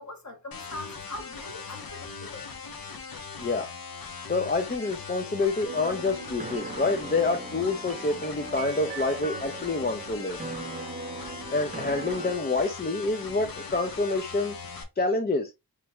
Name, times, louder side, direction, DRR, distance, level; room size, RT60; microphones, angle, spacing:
voice 1, 0.0-2.5, left 2 dB, 45° left, 1.3 m, -42 dB
sound 1, 0.5-14.8, left 5 dB, 65° left, 0.8 m, -40 dB
voice 2, 4.3-10.4 11.5-14.6 15.0-15.5, left 3 dB, 25° left, 0.5 m, -27 dB
sound 2, 5.6-12.3, right 3 dB, 20° right, 0.7 m, -39 dB
3.4 x 3.2 x 3.1 m
wide cardioid pair, 125°, 39 cm